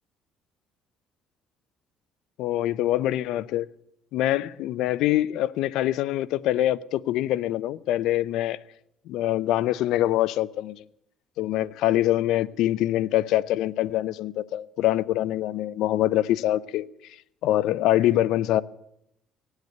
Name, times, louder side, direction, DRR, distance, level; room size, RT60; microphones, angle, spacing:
voice 1, 2.4-3.7 4.1-8.6 9.1-10.8 11.4-16.9 17.4-18.6, left 14 dB, 80° left, 0.5 m, -24 dB
17.5 x 8.1 x 9.2 m
cardioid pair, 120°, 0 cm